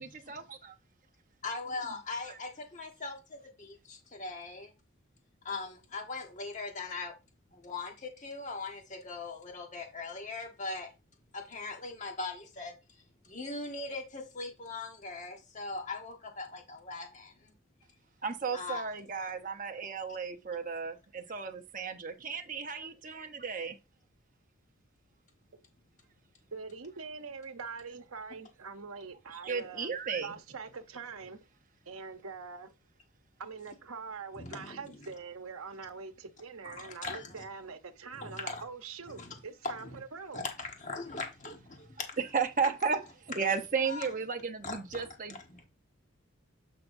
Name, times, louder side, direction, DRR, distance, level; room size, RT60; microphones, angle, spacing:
voice 1, 0.0-0.4 2.3-2.4 18.2-23.8 29.3-30.4 42.2-43.0 43.3-45.4, right 5 dB, 40° right, 0.9 m, -34 dB
voice 2, 1.4-4.7 5.4-7.1 7.5-10.9 11.3-13.0 13.2-17.5 18.5-18.8 34.4-34.9 36.6-37.4 38.2-38.6 39.1-39.3 39.6-40.0 40.3-42.2 43.9-44.0 44.6-44.8 45.3-45.6, left 3 dB, 35° left, 1.4 m, -40 dB
voice 3, 26.5-29.9 30.2-31.4 31.9-32.7 33.4-40.5, right 5 dB, 80° right, 0.9 m, -44 dB
8.4 x 5.8 x 2.7 m
head